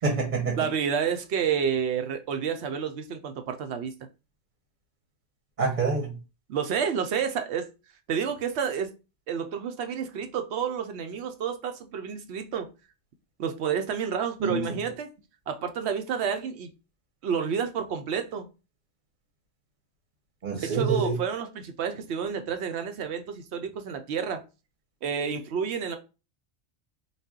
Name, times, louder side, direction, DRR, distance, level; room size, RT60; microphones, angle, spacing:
voice 1, 0.0-0.6 5.6-6.2 14.4-14.8 20.4-21.2, right 4 dB, 45° right, 0.9 m, -27 dB
voice 2, 0.6-3.9 6.5-7.7 8.1-8.9 9.3-12.7 13.4-15.1 15.5-16.7 17.2-18.5 20.6-24.4 25.0-26.0, right 7 dB, 75° right, 0.9 m, -29 dB
4.0 x 2.2 x 3.6 m
omnidirectional pair, 1.1 m